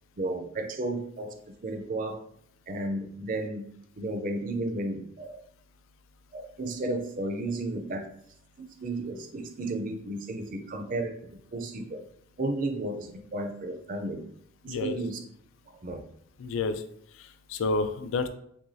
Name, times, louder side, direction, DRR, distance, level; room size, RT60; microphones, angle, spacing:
voice 1, 0.2-1.3 1.6-2.2 2.7-3.6 4.0-5.4 6.3-8.1 8.6-11.1 11.5-12.0 12.4-14.2 14.6-15.2 15.7-16.1, right 2 dB, 40° right, 0.5 m, -33 dB
voice 2, 14.7-15.0 16.4-16.8 17.1-18.3, left 3 dB, 70° left, 0.4 m, -30 dB
6.0 x 2.3 x 2.7 m
head